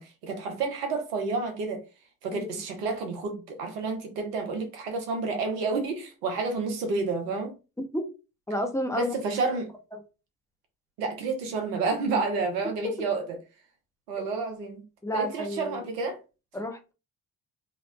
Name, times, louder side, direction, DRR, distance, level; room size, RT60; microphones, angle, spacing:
voice 1, 0.0-1.8 2.2-7.5 8.9-9.7 11.0-13.4 14.1-14.8 15.1-16.2, right 3 dB, 85° right, 0.8 m, -30 dB
voice 2, 8.5-9.1 9.9-10.0 12.8-12.9 15.0-15.8 16.5-16.9, equal, 5° left, 0.6 m, -31 dB
2.7 x 2.1 x 2.4 m
hypercardioid pair, 50°, 46 cm